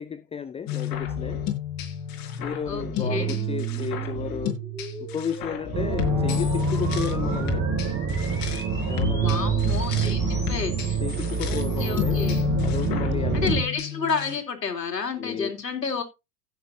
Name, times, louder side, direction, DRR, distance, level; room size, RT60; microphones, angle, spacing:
voice 1, 0.0-1.4 2.4-4.6 5.0-7.7 8.9-9.6 9.9-10.3 11.0-12.2 12.6-13.5 15.2-15.6, left 7 dB, 15° left, 0.5 m, -33 dB
sound 1, 0.7-14.4, left 4 dB, 45° left, 5.1 m, -30 dB
sound 2, 1.1-12.4, equal, 5° right, 6.5 m, -41 dB
voice 2, 2.7-3.3 9.2-11.0 11.5-12.4 13.3-16.0, left 5 dB, 90° left, 3.3 m, -30 dB
sound 3, 5.7-13.6, right 5 dB, 30° right, 2.5 m, -27 dB
16.0 x 8.0 x 2.7 m
hypercardioid pair, 85°, 48 cm